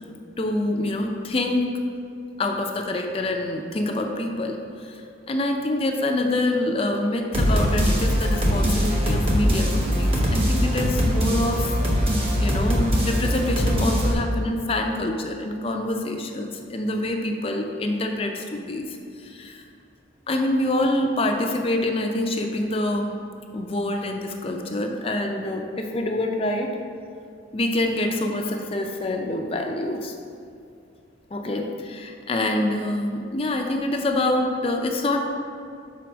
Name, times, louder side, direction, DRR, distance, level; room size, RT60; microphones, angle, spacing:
voice 1, 0.4-1.8 2.4-5.0 5.3-18.9 19.2-19.6 20.3-23.2 23.5-26.8 27.5-30.1 31.3-35.2, left 1 dB, 30° left, 3 dB, 0.4 m, -26 dB
sound 1, 7.3-14.1, equal, 30° right, 1.0 m, -22 dB
5.1 x 4.6 x 6.1 m, 2.5 s
head